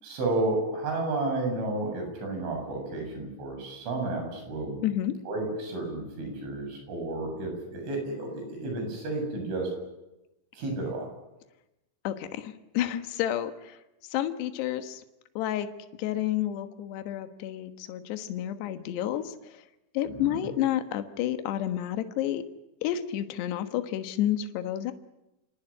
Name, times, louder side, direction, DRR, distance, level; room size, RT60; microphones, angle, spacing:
voice 1, 0.0-4.8 5.3-9.7 10.5-11.1 20.1-20.4, right 2 dB, 85° right, 3 dB, 10.0 m, -32 dB
voice 2, 4.8-5.1 12.0-13.8 14.1-15.0 15.4-15.7 16.0-19.6 19.9-22.4 22.8-24.9, left 12 dB, 70° left, 8 dB, 3.3 m, -30 dB
28.5 x 19.0 x 9.9 m, 0.97 s
omnidirectional pair, 5.4 m